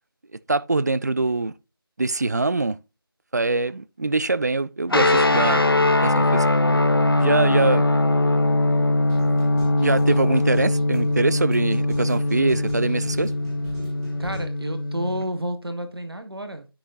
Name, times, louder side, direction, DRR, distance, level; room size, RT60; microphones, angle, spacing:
voice 1, 0.5-1.5 2.0-2.8 3.3-5.6 5.9-6.5 7.2-7.8 9.8-13.3, right 3 dB, 45° right, 0.4 m, -23 dB
sound 1, 4.9-15.2, left 2 dB, 70° left, 1.2 m, -21 dB
sound 2, 8.3-14.4, left 1 dB, 5° right, 1.3 m, -42 dB
voice 2, 14.2-16.7, equal, 80° right, 1.5 m, -30 dB
9.9 x 6.3 x 2.8 m
figure-of-eight pair, 165°, 13 cm